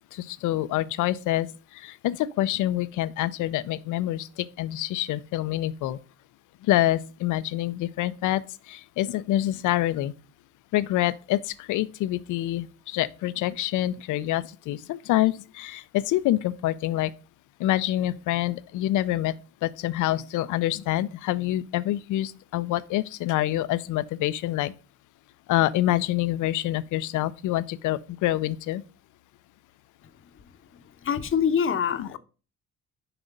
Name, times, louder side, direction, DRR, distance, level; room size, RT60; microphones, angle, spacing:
voice 1, 0.1-1.5 1.7-6.0 6.6-8.4 8.7-10.1 10.7-17.1 17.6-19.3 19.6-24.7 25.5-28.8 32.0-32.2, left 14 dB, 85° left, 0.5 m, -26 dB
voice 2, 30.4-32.2, left 7 dB, 45° left, 0.8 m, -27 dB
5.9 x 4.9 x 5.2 m
cardioid pair, 90°, 30 cm